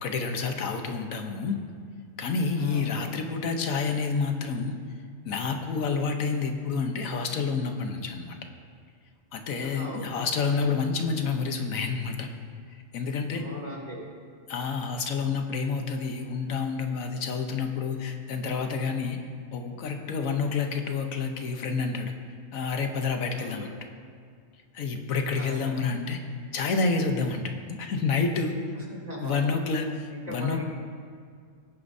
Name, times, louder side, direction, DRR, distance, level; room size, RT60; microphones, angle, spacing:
voice 1, 0.0-1.6 2.2-4.8 5.2-8.4 9.3-12.3 12.9-13.4 14.5-19.2 19.5-22.1 22.5-23.7 24.7-26.2 26.5-28.5 29.2-30.6, left 4 dB, 90° left, 5 dB, 1.4 m, -29 dB
voice 2, 2.6-3.3 9.6-10.3 13.3-14.0 23.3-23.7 25.3-25.8 28.7-29.5 30.1-30.6, equal, 30° right, -5 dB, 2.6 m, -40 dB
17.5 x 9.6 x 2.7 m, 2.2 s
omnidirectional pair, 1.4 m